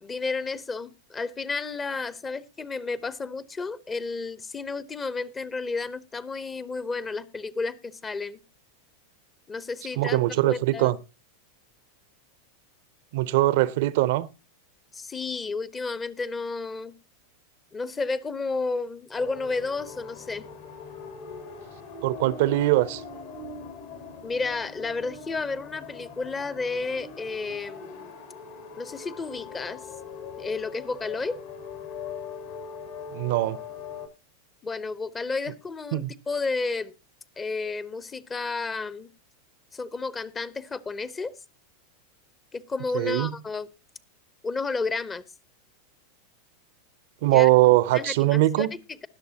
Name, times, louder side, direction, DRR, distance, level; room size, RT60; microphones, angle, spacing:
voice 1, 0.0-8.4 9.5-10.2 10.5-11.0 14.9-16.9 17.7-20.5 24.2-28.1 28.8-29.9 30.4-31.4 34.6-36.9 37.4-39.1 39.7-41.4 42.5-43.7 44.4-45.2 47.2-47.5 47.9-49.1, left 3 dB, 20° left, 0.9 m, -32 dB
voice 2, 10.0-11.0 13.1-14.3 22.0-23.0 33.1-33.6 35.9-36.1 42.9-43.3 47.2-48.8, right 16 dB, 60° right, 0.7 m, -21 dB
sound 1, 19.1-34.1, left 5 dB, 60° left, 3.1 m, -41 dB
20.0 x 6.8 x 2.8 m
hypercardioid pair, 95°, 0 cm